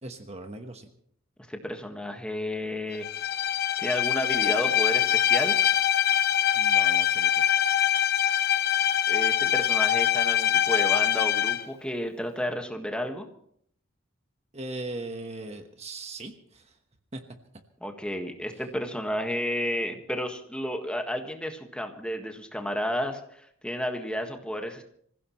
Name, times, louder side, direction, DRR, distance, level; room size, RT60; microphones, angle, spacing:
voice 1, 0.0-0.9 6.5-7.4 14.5-16.7 17.1-17.2, right 2 dB, 30° right, 6 dB, 1.2 m, -39 dB
voice 2, 1.5-3.0 3.8-5.6 9.1-13.2 17.8-24.8, equal, 5° left, 4 dB, 1.6 m, -32 dB
Bowed string instrument, 3.0-11.7, left 10 dB, 50° left, 1.0 m, -23 dB
25.5 x 16.0 x 3.1 m, 0.66 s
head